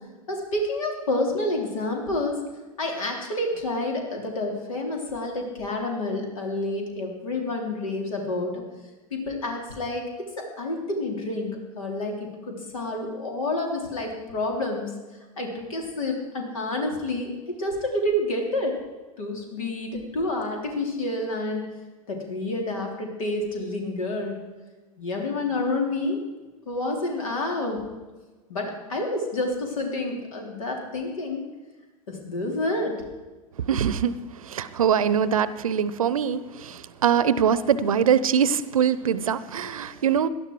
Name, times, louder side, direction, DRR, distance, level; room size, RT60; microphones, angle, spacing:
voice 1, 0.3-2.4 2.8-8.6 9.1-14.9 15.4-18.7 19.2-21.7 22.1-24.4 25.0-26.2 26.7-27.8 28.5-31.5 32.1-33.0 36.7-36.8, left 2 dB, 70° left, 1 dB, 3.6 m, -29 dB
voice 2, 33.7-40.3, right 8 dB, 75° right, 16 dB, 0.8 m, -23 dB
18.0 x 12.0 x 4.8 m, 1.2 s
figure-of-eight pair, 85°, 18 cm